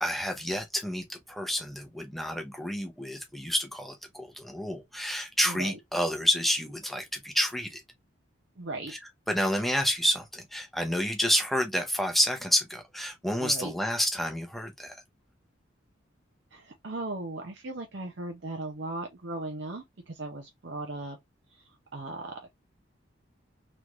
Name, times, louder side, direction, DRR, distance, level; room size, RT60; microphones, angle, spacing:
voice 1, 0.0-7.8 8.9-9.0 9.3-15.0, equal, ahead, 0.7 m, -29 dB
voice 2, 8.6-8.9 13.4-13.7 16.5-21.2 21.5-22.5, right 2 dB, 65° right, 0.7 m, -37 dB
3.3 x 3.1 x 2.4 m
head